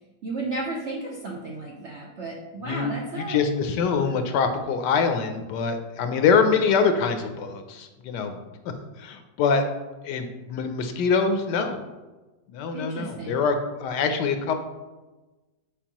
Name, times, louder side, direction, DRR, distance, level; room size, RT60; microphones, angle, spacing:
voice 1, 0.2-3.4 12.7-13.4, right 2 dB, 70° right, -1 dB, 0.6 m, -33 dB
voice 2, 2.6-8.4 8.6-9.6 10.0-11.8 12.5-14.6, left 5 dB, 75° left, 7 dB, 1.1 m, -24 dB
7.1 x 4.7 x 2.9 m, 1.2 s
omnidirectional pair, 2.0 m